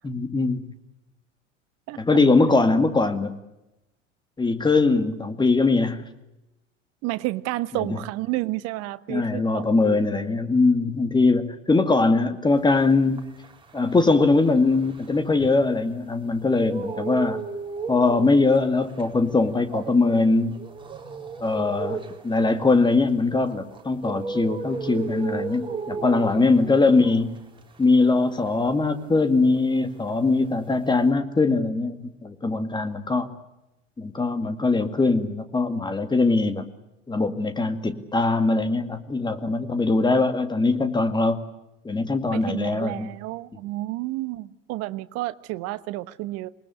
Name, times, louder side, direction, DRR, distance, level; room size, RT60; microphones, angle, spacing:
voice 1, 0.0-0.7 2.0-3.3 4.4-6.1 9.1-13.2 13.7-17.4 17.9-20.7 21.4-27.4 27.8-33.3 34.0-36.7 37.1-41.4 41.8-43.1, left 3 dB, 10° left, 2.1 m, -21 dB
voice 2, 1.9-2.2 7.0-10.0 42.3-46.5, right 18 dB, 40° right, 1.2 m, -31 dB
sound 1, 12.7-16.0 16.3-29.8 30.0-31.1, right 5 dB, 15° right, 4.0 m, -35 dB
27.0 x 21.0 x 8.3 m
figure-of-eight pair, 80°, 37 cm